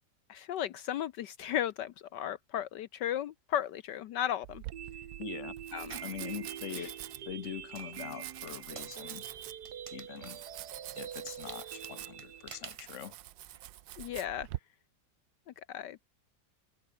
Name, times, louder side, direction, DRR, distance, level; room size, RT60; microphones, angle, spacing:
voice 1, 0.3-4.6 5.7-6.0 6.8-6.9 14.0-14.5 15.5-16.0, left 11 dB, 70° left, 1.3 m, -35 dB
Domestic sounds home sounds, 4.4-14.6, right 15 dB, 75° right, 1.3 m, -46 dB
sound 1, 4.7-12.7, right 9 dB, 60° right, 1.7 m, -45 dB
voice 2, 5.2-5.5 6.0-7.0 7.3-9.3 9.9-10.4 10.9-13.1, left 10 dB, 50° left, 1.1 m, -43 dB
sound 2, 5.9-6.2 6.8-14.2, right 4 dB, 40° right, 0.4 m, -52 dB
open air
omnidirectional pair, 2.0 m